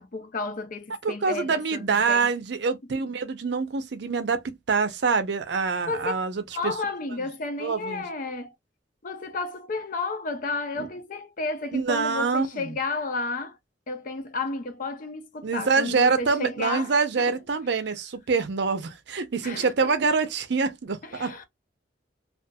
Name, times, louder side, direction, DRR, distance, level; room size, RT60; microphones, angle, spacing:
voice 1, 0.0-2.3 5.9-6.1 6.5-8.5 9.0-13.6 13.9-17.4 19.4-20.0 21.0-21.4, left 3 dB, 45° left, 0.5 m, -32 dB
voice 2, 1.0-6.7 7.6-8.0 10.8-10.9 11.7-12.8 15.4-21.4, right 4 dB, 65° right, 0.5 m, -25 dB
2.8 x 2.4 x 2.2 m
head